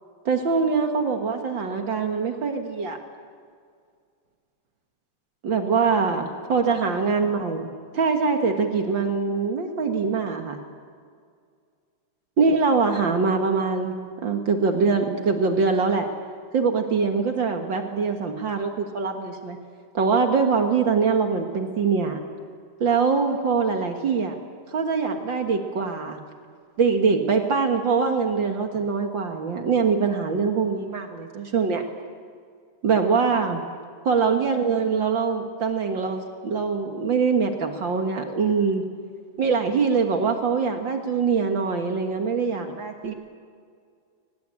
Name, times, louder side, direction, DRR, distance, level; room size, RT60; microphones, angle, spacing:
voice 1, 0.2-3.0 5.4-10.6 12.4-13.9 14.2-16.1 16.5-19.6 19.9-22.2 22.8-24.4 24.7-26.2 26.8-31.8 32.8-33.6 34.0-38.8 39.4-43.1, right 5 dB, 65° right, 4 dB, 1.1 m, -23 dB
24.0 x 18.5 x 8.9 m, 2.1 s
omnidirectional pair, 4.5 m